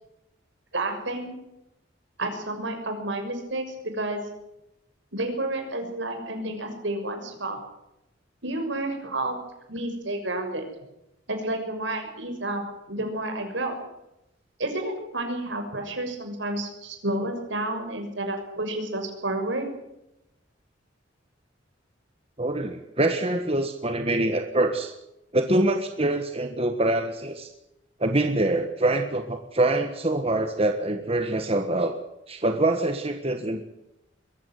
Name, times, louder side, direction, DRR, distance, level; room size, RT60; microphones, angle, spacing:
voice 1, 0.7-1.3 2.2-4.2 5.1-7.6 8.4-9.4 9.7-10.7 11.3-13.7 14.6-19.7, right 1 dB, 75° right, 5 dB, 6.4 m, -30 dB
voice 2, 22.4-24.9 25.3-27.5 28.0-31.9 32.3-33.6, right 2 dB, 30° right, 6 dB, 1.6 m, -25 dB
22.5 x 15.5 x 9.5 m, 0.88 s
head